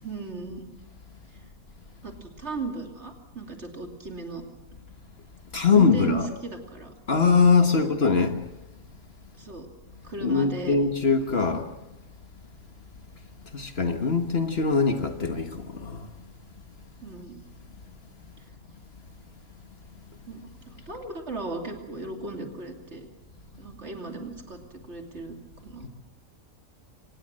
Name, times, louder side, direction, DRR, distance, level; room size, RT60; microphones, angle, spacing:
voice 1, 0.0-0.7 2.0-4.4 5.7-6.9 7.8-7.9 9.3-9.7 10.0-10.8 11.3-11.4 17.0-17.4 20.3-23.1 23.6-25.4 25.6-25.9, right 3 dB, 50° right, 3 dB, 3.1 m, -36 dB
voice 2, 5.5-6.3 7.1-8.4 10.2-11.7 13.5-16.1 25.8-25.9, left 5 dB, 45° left, 7 dB, 1.6 m, -22 dB
24.5 x 19.0 x 7.6 m, 0.96 s
omnidirectional pair, 1.4 m